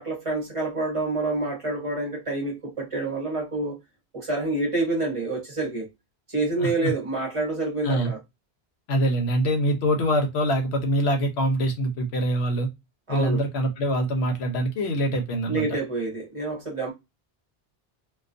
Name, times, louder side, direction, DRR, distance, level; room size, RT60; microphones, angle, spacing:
voice 1, 0.0-3.8 4.1-5.9 6.3-8.2 13.1-13.4 15.5-16.9, right 2 dB, 35° right, 0.8 m, -27 dB
voice 2, 6.6-6.9 7.8-8.1 8.9-12.7 13.1-15.8, equal, 85° left, 0.9 m, -24 dB
2.3 x 2.3 x 2.5 m
omnidirectional pair, 1.1 m